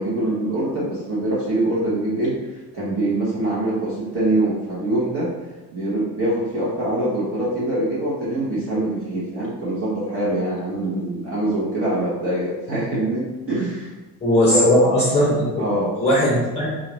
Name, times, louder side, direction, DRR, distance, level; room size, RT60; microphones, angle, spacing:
voice 1, 0.0-5.3 5.7-14.0 14.4-14.7 15.6-15.9, right 1 dB, 35° right, -8 dB, 0.9 m, -24 dB
voice 2, 14.2-15.6 16.0-16.7, equal, 15° left, -7 dB, 0.6 m, -18 dB
3.9 x 2.4 x 3.1 m, 1.2 s
cardioid pair, 165°, 40 cm